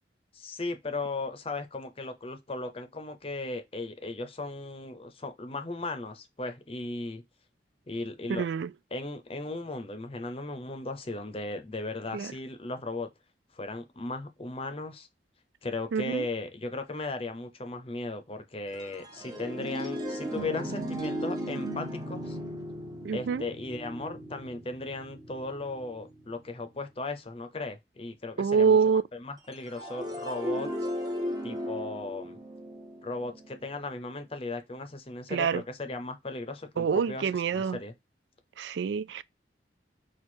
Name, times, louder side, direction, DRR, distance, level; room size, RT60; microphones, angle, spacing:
voice 1, 0.3-7.2 7.9-8.5 8.9-13.1 13.5-15.1 15.6-22.4 23.1-28.8 29.1-30.9 31.4-32.4 33.0-37.9, left 2 dB, 35° left, 0.7 m, -37 dB
voice 2, 8.3-8.7 12.1-12.3 15.9-16.3 23.0-23.5 28.4-29.0 35.3-35.6 36.8-37.8 38.6-39.2, right 6 dB, 80° right, 0.3 m, -26 dB
sound 1, 18.7-26.4 29.5-33.6, equal, 20° right, 0.9 m, -36 dB
4.5 x 2.4 x 4.3 m
head